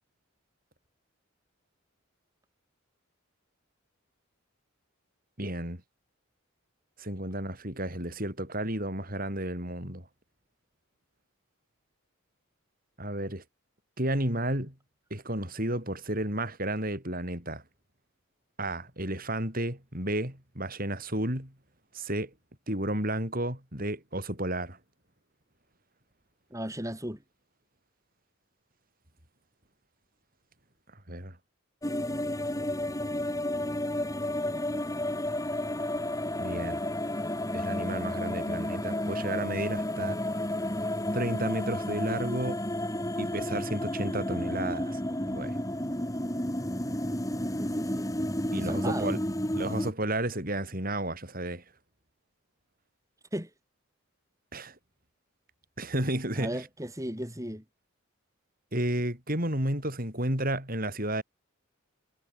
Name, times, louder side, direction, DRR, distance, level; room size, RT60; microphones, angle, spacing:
voice 1, 5.4-5.8 7.0-10.1 13.0-13.4 14.0-14.7 15.1-17.6 18.6-21.5 21.9-22.3 22.7-24.8 31.1-31.4 36.4-36.8 37.5-40.3 41.1-42.6 43.2-45.0 45.3-45.6 48.5-49.2 49.6-51.6 54.5-54.7 55.8-56.6 58.7-61.2, right 1 dB, 40° right, 7.9 m, -32 dB
voice 2, 26.5-27.2 47.6-48.1 48.6-49.2 53.3-53.5 56.4-57.6, right 1 dB, 15° right, 5.8 m, -35 dB
sound 1, 31.8-49.9, left 1 dB, 15° left, 2.8 m, -31 dB
head